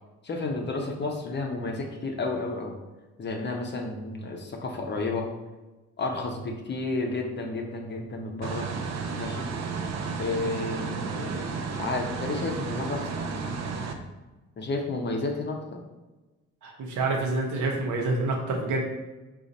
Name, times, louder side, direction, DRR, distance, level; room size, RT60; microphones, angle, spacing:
voice 1, 0.2-2.8 3.2-5.3 6.0-8.7 9.2-9.4 10.2-13.9 14.6-15.8, left 3 dB, 35° left, 1 dB, 0.7 m, -32 dB
sound 1, 8.4-13.9, right 5 dB, 60° right, 0.5 m, -32 dB
voice 2, 16.6-18.8, right 2 dB, 75° right, 1 dB, 0.9 m, -27 dB
3.8 x 2.5 x 4.0 m, 1.1 s
cardioid pair, 90°, 30 cm